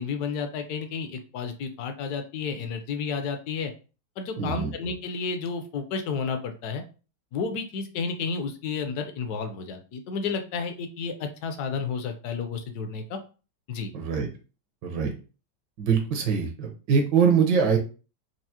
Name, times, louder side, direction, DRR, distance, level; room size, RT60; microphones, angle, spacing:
voice 1, 0.0-3.7 4.2-6.8 7.3-13.2 13.7-13.9, left 5 dB, 65° left, 6 dB, 1.1 m, -31 dB
voice 2, 4.4-4.7 13.9-14.3 14.8-15.1 15.8-17.8, right 6 dB, 75° right, 3 dB, 1.5 m, -23 dB
4.7 x 2.4 x 2.8 m, 0.34 s
omnidirectional pair, 2.0 m